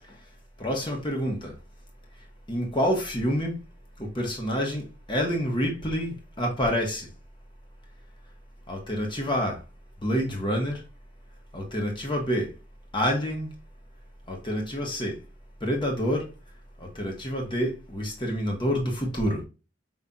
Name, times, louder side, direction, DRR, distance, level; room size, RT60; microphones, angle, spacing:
voice 1, 0.6-1.5 2.5-3.6 4.0-7.1 8.7-9.6 10.0-10.8 11.5-12.5 12.9-13.5 14.3-15.2 15.6-16.3 16.8-19.4, equal, 25° left, 1.1 m, -27 dB
5.4 x 3.2 x 2.4 m
head